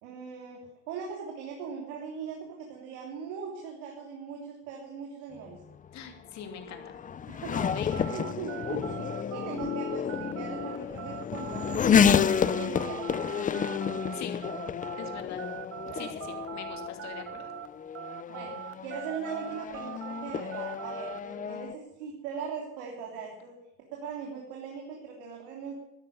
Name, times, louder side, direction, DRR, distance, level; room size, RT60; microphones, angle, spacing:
voice 1, 0.0-5.6 7.2-7.7 8.1-12.2 12.6-13.5 14.5-14.6 15.0-15.1 15.9-16.1 18.3-23.5 23.9-25.7, right 6 dB, 80° right, 0 dB, 3.3 m, -40 dB
Race car auto racing / Accelerating revving vroom, 5.5-21.7, left 7 dB, 25° left, 0.6 m, -30 dB
voice 2, 5.9-6.9 7.7-8.1 14.1-14.4 15.0-15.4 15.9-17.5, left 8 dB, 55° left, 4 dB, 2.9 m, -42 dB
sound 1, 7.5-17.7 17.9-21.2, right 12 dB, 45° right, 1.0 m, -42 dB
12.5 x 10.5 x 9.3 m, 0.95 s
supercardioid pair, 110°, 34 cm